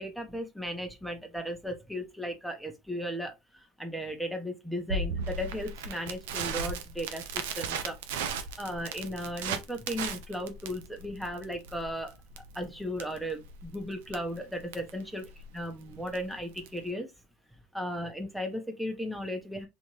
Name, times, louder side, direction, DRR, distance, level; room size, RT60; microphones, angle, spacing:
voice 1, 0.0-8.0 8.6-12.2 12.5-15.3 15.5-17.1 17.7-19.7, equal, ahead, 1.1 m, -36 dB
Crackle, 4.9-16.9, right 4 dB, 90° right, 0.6 m, -37 dB
3.4 x 3.0 x 3.1 m
supercardioid pair, 95°, 0 cm